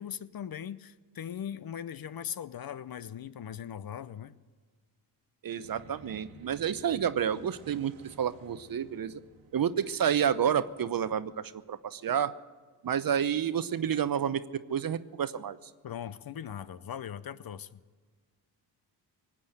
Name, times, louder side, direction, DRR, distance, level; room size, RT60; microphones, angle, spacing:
voice 1, 0.0-4.4 15.8-17.8, left 9 dB, 45° left, 16 dB, 0.7 m, -39 dB
voice 2, 5.4-9.2 9.5-12.3 12.8-14.4 14.7-15.6, right 8 dB, 45° right, 14 dB, 0.8 m, -29 dB
sound 1, 5.5-12.1, right 3 dB, 75° right, 1.5 m, -55 dB
19.0 x 8.5 x 7.8 m, 1.5 s
supercardioid pair, 45°, 48 cm